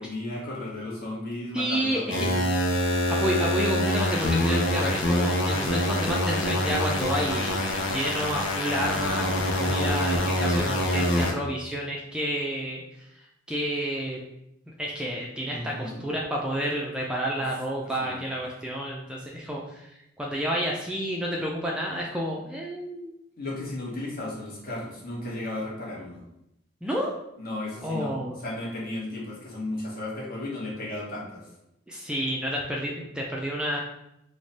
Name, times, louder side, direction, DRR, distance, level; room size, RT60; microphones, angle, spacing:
voice 1, 0.0-2.4 15.5-16.0 18.0-18.2 23.4-26.2 27.4-28.1 28.4-31.4, left 2 dB, 50° left, -4 dB, 1.0 m, -34 dB
voice 2, 1.5-2.3 3.1-7.6 7.9-9.3 9.5-13.1 13.5-14.2 14.8-19.9 20.2-23.1 26.8-27.1 27.8-28.4 31.9-33.8, equal, 5° right, -3 dB, 0.3 m, -30 dB
sound 1, 2.1-11.3, left 1 dB, 70° left, 0.6 m, -25 dB
3.1 x 2.1 x 4.0 m, 0.83 s
head